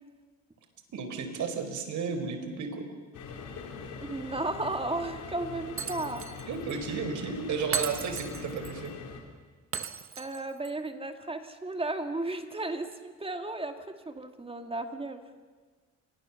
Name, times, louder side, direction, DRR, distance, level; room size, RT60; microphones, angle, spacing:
voice 1, 0.9-2.9 6.5-8.9, right 5 dB, 70° right, 7 dB, 4.2 m, -33 dB
sound 1, 3.1-9.2, left 5 dB, 85° left, 3.8 m, -42 dB
voice 2, 4.0-6.2 10.2-15.2, right 2 dB, 20° right, 7 dB, 2.1 m, -34 dB
Shatter, 5.8-6.4 6.7-6.8 7.7-8.7 9.7-10.7, right 6 dB, 45° right, 1.3 m, -36 dB
27.5 x 22.5 x 7.0 m, 1.5 s
cardioid pair, 90°, 30 cm